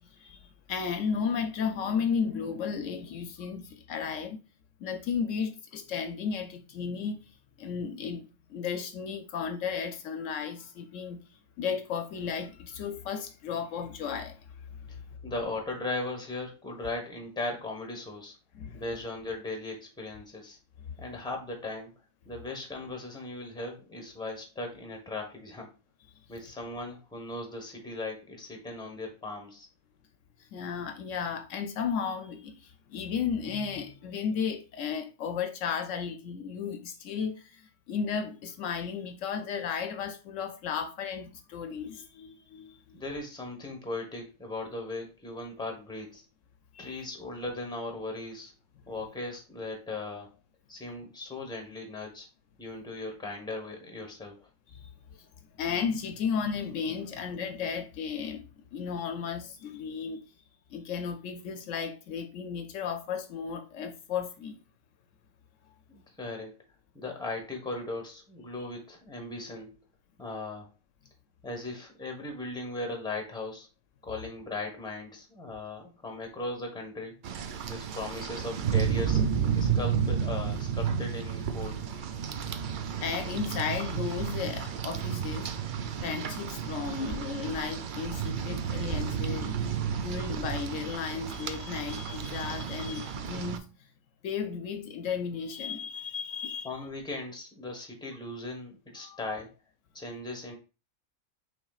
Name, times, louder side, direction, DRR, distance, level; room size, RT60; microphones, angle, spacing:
voice 1, 0.0-4.4 4.8-8.2 8.5-11.2 11.6-15.2 18.5-18.8 30.4-43.0 46.7-47.0 54.7-54.9 55.2-55.3 55.6-60.2 60.7-64.6 83.0-85.5 86.0-89.5 90.0-93.7 94.2-96.7 99.0-99.2, left 6 dB, 75° left, 0.9 m, -34 dB
voice 2, 15.2-18.4 18.7-20.6 21.0-21.9 22.2-25.7 26.3-29.7 42.9-46.2 46.8-48.5 48.9-50.3 50.7-52.3 52.6-54.5 65.9-66.6 66.9-69.7 70.2-70.7 71.4-73.7 74.0-77.1 77.7-79.2 79.5-81.8 96.6-99.5 99.9-100.6, left 2 dB, 5° left, 1.1 m, -38 dB
Rain, 77.2-93.6, right 7 dB, 65° right, 0.5 m, -32 dB
6.0 x 3.7 x 2.3 m
omnidirectional pair, 1.4 m